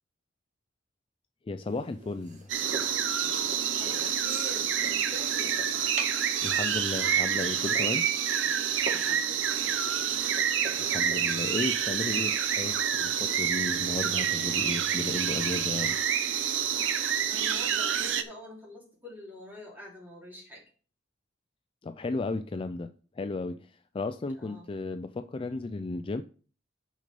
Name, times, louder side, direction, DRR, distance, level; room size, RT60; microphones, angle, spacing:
voice 1, 1.5-2.5 6.4-8.1 10.8-16.0 21.8-22.9 23.2-26.2, left 3 dB, 30° left, 0.4 m, -34 dB
sound 1, 1.7-13.5, right 2 dB, 40° right, 1.4 m, -45 dB
sound 2, 2.5-18.2, right 8 dB, 85° right, 0.8 m, -28 dB
voice 2, 3.8-5.5 8.4-8.6 8.9-10.2 17.2-20.6 24.4-24.7, left 1 dB, 10° right, 3.6 m, -45 dB
6.3 x 5.2 x 6.8 m
head